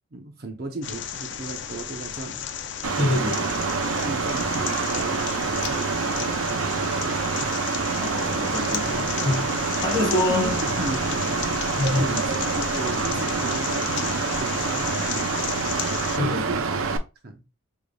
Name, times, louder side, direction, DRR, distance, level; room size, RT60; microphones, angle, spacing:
voice 1, 0.1-2.4 3.9-7.8 10.0-11.5 12.0-15.5 16.2-16.8 17.2-17.4, right 2 dB, 50° right, 0.7 m, -35 dB
sound 1, 0.8-16.2, left 8 dB, 60° left, 0.5 m, -33 dB
Mechanical fan, 2.8-17.0, right 4 dB, 90° right, 0.6 m, -27 dB
voice 2, 3.0-3.7 8.0-10.6 11.8-12.2 13.1-13.4 16.2-16.6, left 2 dB, 20° left, 2.5 m, -27 dB
5.0 x 3.5 x 2.3 m
head